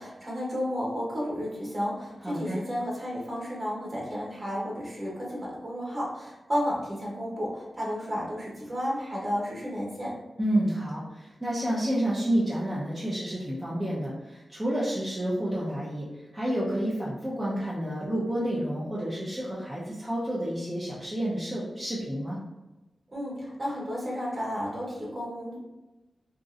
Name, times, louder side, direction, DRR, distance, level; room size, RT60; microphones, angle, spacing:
voice 1, 0.0-10.2 23.1-25.6, equal, 30° right, -5 dB, 1.1 m, -32 dB
voice 2, 2.2-2.6 10.4-16.1 16.3-22.4, right 1 dB, 10° right, -8 dB, 0.6 m, -29 dB
2.9 x 2.6 x 2.5 m, 1.1 s
wide cardioid pair, 130°, 0 cm